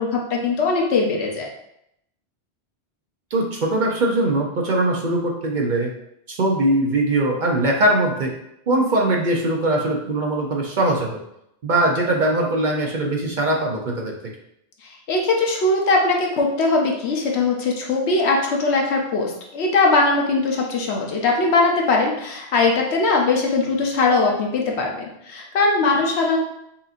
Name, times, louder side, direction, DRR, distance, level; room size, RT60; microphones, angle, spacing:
voice 1, 0.0-1.5 14.8-25.0 25.2-26.4, left 3 dB, 75° left, 0 dB, 1.0 m, -20 dB
voice 2, 3.3-5.9 6.3-8.3 8.7-11.2 11.6-14.1, right 1 dB, 50° right, -1 dB, 0.7 m, -21 dB
5.5 x 2.7 x 2.5 m, 0.78 s
omnidirectional pair, 1.1 m